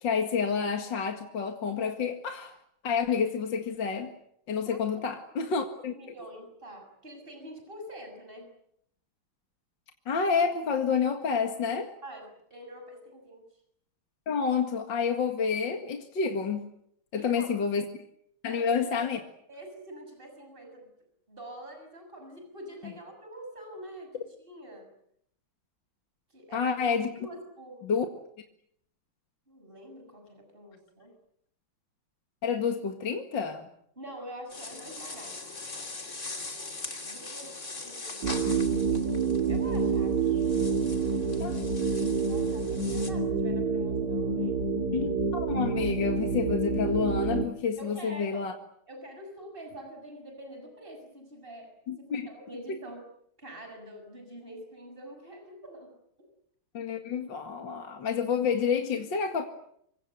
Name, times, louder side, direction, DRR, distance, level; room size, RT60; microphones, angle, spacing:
voice 1, 0.0-2.5 2.8-4.1 4.5-5.9 10.1-11.9 14.3-16.7 17.1-17.8 18.4-19.2 26.5-27.1 27.8-28.1 32.4-33.7 41.4-41.6 44.9-48.5 51.9-52.3 56.7-59.5, left 6 dB, 60° left, 2.6 m, -29 dB
voice 2, 4.7-5.1 5.3-5.6 5.9-8.5 12.0-13.5 17.1-17.5 18.5-19.1 19.5-20.9 21.3-24.9 26.3-26.8 27.2-27.9 29.5-31.1 34.0-35.4 37.0-38.3 39.5-40.5 42.2-44.7 47.8-48.5 48.9-51.7 52.0-53.1 53.4-55.9, right 1 dB, 25° right, 7.0 m, -45 dB
sound 1, 34.5-43.1, left 3 dB, 35° left, 3.2 m, -41 dB
sound 2, 38.2-47.5, right 5 dB, 50° right, 2.9 m, -28 dB
27.0 x 24.5 x 7.8 m
omnidirectional pair, 2.3 m